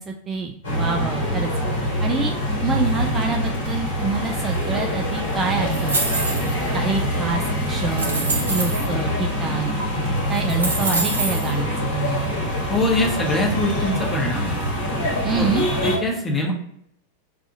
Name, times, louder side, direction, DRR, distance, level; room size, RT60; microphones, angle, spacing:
voice 1, 0.0-1.5 2.0-2.3 2.6-6.2 6.7-7.4 7.7-9.8 10.3-12.3 15.2-15.7, right 4 dB, 20° right, 3 dB, 0.3 m, -26 dB
sound 1, 0.6-16.0, equal, 65° left, 1.1 m, -24 dB
sound 2, 5.7-6.7 7.3-7.4 7.9-8.9 9.8-9.9 10.3-11.5, right 3 dB, 75° right, 0.7 m, -26 dB
voice 2, 12.7-14.6 15.4-15.5 15.8-16.5, left 1 dB, 15° left, -1 dB, 0.9 m, -23 dB
2.4 x 2.4 x 4.0 m, 0.72 s
figure-of-eight pair, 90°, 0 cm